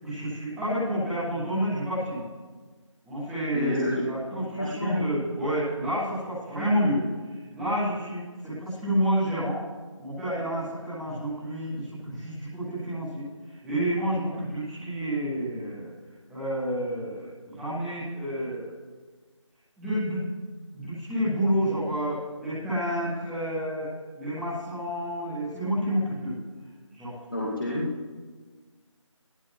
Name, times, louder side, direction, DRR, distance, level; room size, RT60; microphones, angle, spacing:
voice 1, 0.0-2.2 3.0-9.5 10.0-15.9 16.3-18.7 19.8-20.2 20.7-23.9 24.1-26.3 26.9-27.1, equal, ahead, -15 dB, 0.8 m, -29 dB
voice 2, 3.5-4.0 4.6-5.0 27.3-27.9, left 1 dB, 45° left, -5 dB, 2.5 m, -29 dB
19.5 x 15.0 x 3.4 m, 1.4 s
figure-of-eight pair, 165°, 16 cm